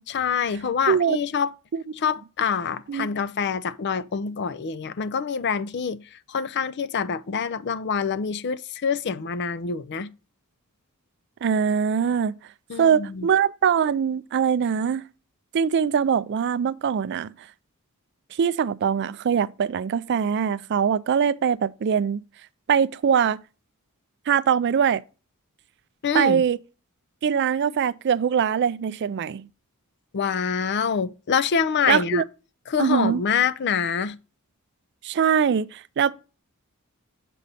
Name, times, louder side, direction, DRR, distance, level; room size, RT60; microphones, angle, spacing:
voice 1, 0.1-1.5 2.0-6.0 6.3-10.1 12.7-13.3 26.0-26.4 30.1-32.2 32.7-34.2, left 6 dB, 50° left, 0.4 m, -26 dB
voice 2, 0.9-1.2 1.7-1.8 2.9-3.1 11.4-12.4 12.8-15.0 15.5-17.3 18.4-22.2 22.7-23.4 24.3-25.0 26.1-26.6 27.2-29.5 31.9-32.2 32.8-33.2 35.0-36.1, right 7 dB, 50° right, 0.3 m, -22 dB
7.4 x 5.4 x 4.0 m
head